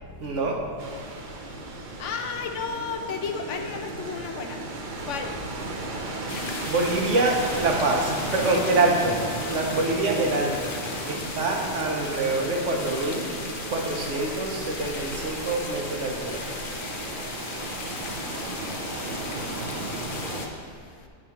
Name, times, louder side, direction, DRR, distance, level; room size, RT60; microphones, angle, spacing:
voice 1, 0.2-0.6 6.6-9.2 9.5-10.7 11.1-13.4 13.7-16.5, right 2 dB, 75° right, 1 dB, 1.3 m, -25 dB
sound 1, 0.8-20.5, right 2 dB, 50° right, 0.7 m, -35 dB
voice 2, 2.0-4.6 5.0-5.3 17.4-17.5 18.3-18.4 18.7-21.1, left 5 dB, 80° left, 5 dB, 1.0 m, -35 dB
sound 2, 6.3-20.5, left 4 dB, 50° left, 0.8 m, -37 dB
8.5 x 3.7 x 5.7 m, 2.2 s
omnidirectional pair, 1.3 m